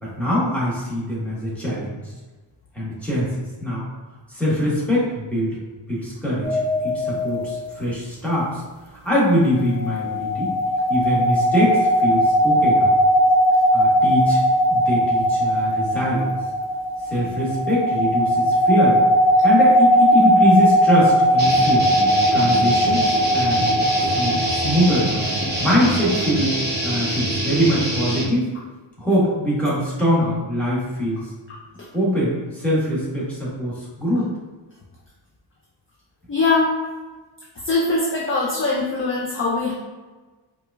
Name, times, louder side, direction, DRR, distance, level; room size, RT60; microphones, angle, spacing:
voice 1, 0.0-2.0 2.7-3.8 4.3-5.6 5.9-6.6 6.8-8.6 9.0-10.5 10.9-12.9 13.7-14.4 14.7-16.3 17.0-19.0 19.4-21.9 22.3-25.2 25.6-26.5 26.8-28.5 29.0-31.3 31.9-34.3, equal, 5° left, -8 dB, 1.2 m, -22 dB
sound 1, 6.4-7.6 9.6-25.6, equal, 80° right, 0.6 m, -19 dB
sound 2, 21.4-28.3, right 1 dB, 25° right, 0.7 m, -25 dB
voice 2, 36.3-36.8 37.6-39.7, left 3 dB, 30° left, -4 dB, 0.4 m, -21 dB
4.7 x 2.5 x 2.2 m, 1.3 s
wide cardioid pair, 160°, 45 cm